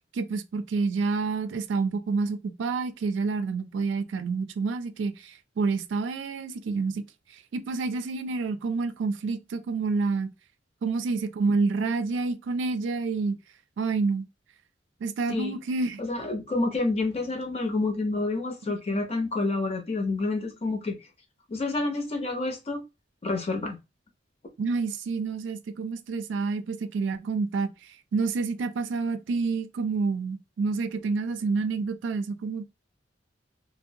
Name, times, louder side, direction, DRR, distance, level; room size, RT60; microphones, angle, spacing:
voice 1, 0.1-7.0 7.5-10.3 10.8-13.4 13.8-14.3 15.0-16.0 18.9-19.0 24.6-27.7 28.1-32.6, right 4 dB, 75° right, 0.4 m, -28 dB
voice 2, 16.0-21.0 21.5-22.8 23.2-23.8, left 3 dB, 35° left, 0.6 m, -28 dB
2.5 x 2.0 x 2.7 m
head